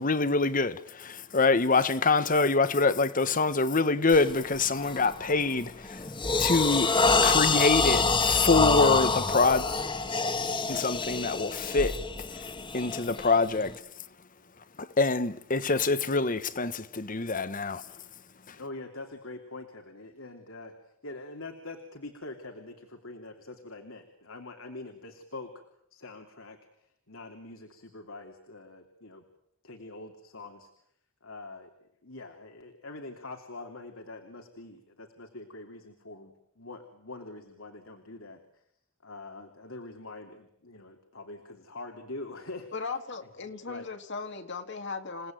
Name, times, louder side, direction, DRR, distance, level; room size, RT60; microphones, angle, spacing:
voice 1, 0.0-6.0 6.4-6.9 7.2-9.7 10.7-12.0 12.7-13.7 14.8-17.8 18.5-18.6, left 3 dB, 40° left, 1.3 m, -25 dB
sound 1, 4.1-4.4 4.8-5.1 5.6-13.7, left 4 dB, 25° left, 1.6 m, -26 dB
voice 2, 18.5-20.8 21.0-25.5 25.9-29.2 29.6-30.7 31.2-31.7 32.0-38.6 39.0-42.7 43.7-43.9 44.2-44.3, left 2 dB, 80° left, 3.1 m, -44 dB
voice 3, 42.7-45.3, left 4 dB, 60° left, 2.1 m, -37 dB
29.5 x 18.5 x 9.2 m
head